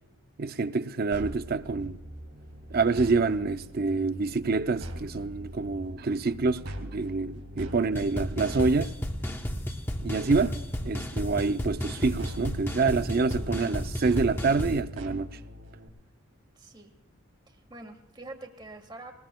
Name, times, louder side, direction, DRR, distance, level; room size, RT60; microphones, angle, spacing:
voice 1, 0.4-2.0 2.7-8.9 10.0-10.6 10.8-15.3, right 4 dB, 45° right, 0.5 m, -27 dB
sound 1, 1.1-15.9, equal, 80° right, 2.6 m, -42 dB
sound 2, 8.0-14.8, equal, 10° left, 0.8 m, -33 dB
voice 2, 16.6-16.9 17.5-19.1, right 2 dB, 20° right, 1.7 m, -45 dB
20.5 x 20.0 x 2.3 m
head